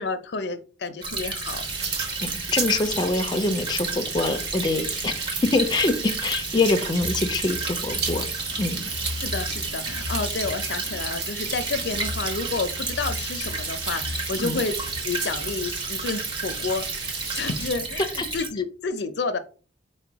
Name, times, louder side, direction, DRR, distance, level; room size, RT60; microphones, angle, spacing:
voice 1, 0.0-1.6 9.2-14.8 15.0-16.9 17.3-19.4, left 4 dB, 70° left, 11 dB, 0.5 m, -30 dB
Stream / Trickle dribble, 1.0-18.5, right 3 dB, 30° right, 1.0 m, -32 dB
sound 1, 1.4-17.7, right 5 dB, 70° right, 1.1 m, -34 dB
voice 2, 2.2-8.3 8.6-8.8 14.4-14.6 18.2-18.3, left 2 dB, 25° left, 8 dB, 0.5 m, -25 dB
sound 2, 7.0-15.2, left 3 dB, 85° right, 1.6 m, -38 dB
4.7 x 2.2 x 4.6 m, 0.36 s
head